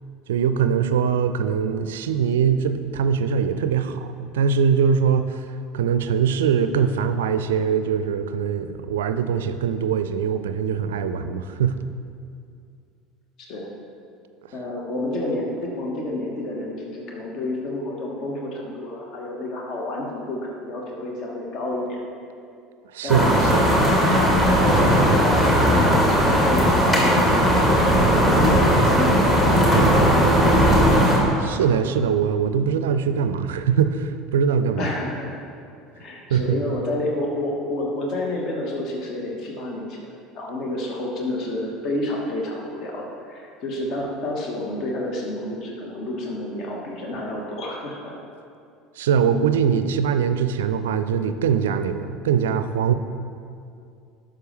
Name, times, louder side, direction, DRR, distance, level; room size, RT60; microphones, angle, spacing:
voice 1, 0.3-5.4 5.7-11.7 22.9-23.6 31.4-34.9 36.3-36.6 49.0-52.9, right 7 dB, 70° right, 10 dB, 0.4 m, -22 dB
voice 2, 13.4-13.7 14.5-22.0 23.0-23.3 24.6-30.6 34.8-35.4 36.0-40.0 40.3-48.1, left 1 dB, 45° left, -1 dB, 1.3 m, -29 dB
sound 1, 23.1-31.2, equal, 25° left, 2.2 m, -17 dB
11.0 x 6.5 x 3.3 m, 2.4 s
figure-of-eight pair, 65°, 0 cm